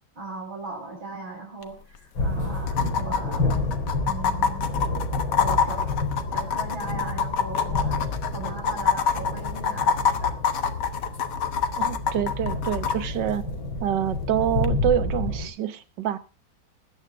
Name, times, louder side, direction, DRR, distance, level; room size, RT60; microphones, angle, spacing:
voice 1, 0.2-3.5 4.0-4.7 5.3-5.9 6.3-10.3, right 3 dB, 90° right, 0 dB, 6.1 m, -38 dB
sound 1, 1.6-1.7 1.9-2.0 2.7-13.0 14.6-14.7, left 7 dB, 60° left, 1.7 m, -25 dB
sound 2, 2.2-15.5, left 2 dB, 85° left, 3.7 m, -29 dB
voice 2, 11.8-13.4 13.8-16.2, right 10 dB, 65° right, 13 dB, 1.7 m, -26 dB
21.0 x 9.4 x 3.5 m, 0.32 s
omnidirectional pair, 2.1 m